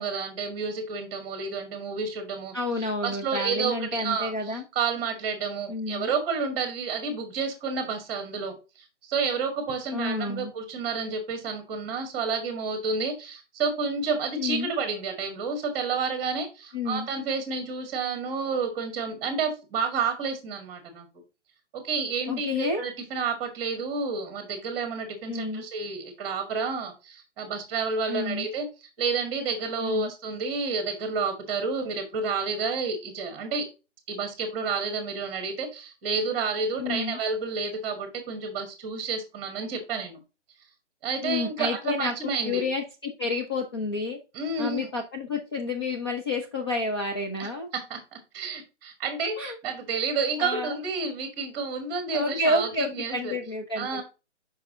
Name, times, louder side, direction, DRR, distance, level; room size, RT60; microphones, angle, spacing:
voice 1, 0.0-21.1 21.7-28.7 29.0-33.7 34.1-40.2 41.0-42.6 44.3-44.9 47.4-47.5 47.7-53.3 53.8-54.0, right 4 dB, 15° right, 5 dB, 1.6 m, -30 dB
voice 2, 2.5-4.6 5.7-6.1 9.9-10.5 14.4-14.7 16.7-17.1 22.3-22.9 25.3-25.6 28.1-28.5 29.8-30.1 36.8-37.2 41.2-42.1 42.4-44.2 44.6-47.7 49.4-49.6 50.4-50.8 52.1-54.0, left 2 dB, 20° left, 2 dB, 0.5 m, -30 dB
5.8 x 5.5 x 3.7 m, 0.29 s
hypercardioid pair, 155°, 36 cm